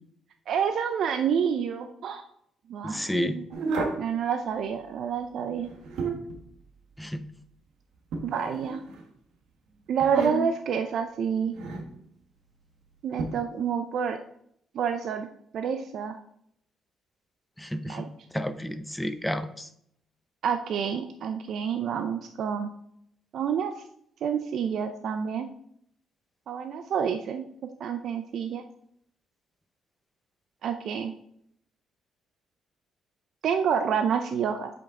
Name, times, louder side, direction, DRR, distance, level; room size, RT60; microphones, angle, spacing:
voice 1, 0.5-2.2 2.7-3.4 4.0-5.7 8.2-8.8 9.9-11.6 13.0-14.2 14.7-15.3 15.5-16.2 17.9-18.0 20.4-22.7 23.3-23.7 24.2-25.5 26.5-27.4 27.8-28.6 30.6-31.1 33.4-34.7, right 7 dB, 70° right, 7 dB, 0.5 m, -28 dB
voice 2, 2.8-3.4 7.0-7.3 17.6-18.1 18.3-19.7, equal, 5° left, 10 dB, 0.7 m, -31 dB
sound 1, 3.5-4.1 5.6-6.4 8.1-9.0 10.0-10.7 11.5-11.9 13.2-13.3, right 3 dB, 85° right, 1.2 m, -31 dB
7.8 x 5.4 x 3.7 m, 0.71 s
cardioid pair, 90°, 0 cm